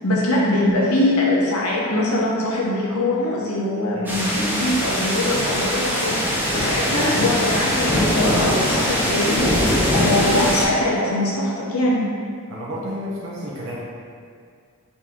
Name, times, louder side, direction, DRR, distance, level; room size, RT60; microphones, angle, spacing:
voice 1, 0.0-9.4 9.9-12.1, left 1 dB, 75° left, -4 dB, 0.9 m, -22 dB
sound 1, 4.1-10.7, equal, 10° right, 0.6 m, -21 dB
voice 2, 12.5-13.8, equal, 60° right, -5 dB, 0.6 m, -32 dB
4.0 x 2.9 x 3.6 m, 2.1 s
head